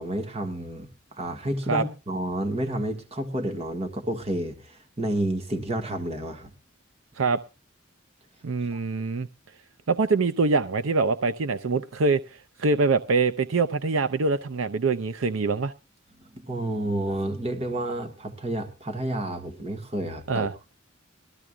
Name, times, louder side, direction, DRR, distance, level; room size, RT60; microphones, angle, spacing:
voice 1, 0.0-6.5 8.7-8.8 16.3-20.5, right 1 dB, 30° right, 5 dB, 1.5 m, -30 dB
voice 2, 8.4-9.3 9.9-15.7 20.3-20.5, right 4 dB, 85° right, 10 dB, 0.6 m, -24 dB
21.0 x 14.0 x 2.3 m, 0.29 s
head